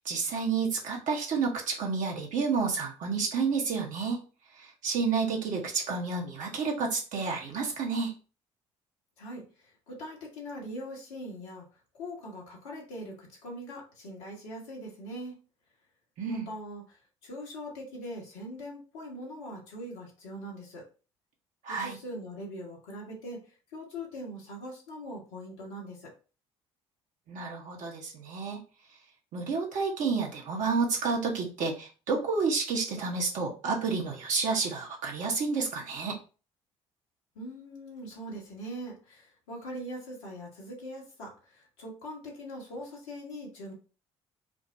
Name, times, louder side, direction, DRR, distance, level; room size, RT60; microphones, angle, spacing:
voice 1, 0.0-4.2 4.6-8.1 16.2-16.5 21.6-22.0 27.3-28.6 29.3-36.2, right 4 dB, 55° right, 0 dB, 1.1 m, -30 dB
voice 2, 9.2-11.7 11.9-15.3 16.3-20.8 21.6-23.4 23.7-26.1 37.3-43.7, equal, 75° left, -2 dB, 1.3 m, -42 dB
4.9 x 2.1 x 2.6 m, 0.35 s
figure-of-eight pair, 50°, 15 cm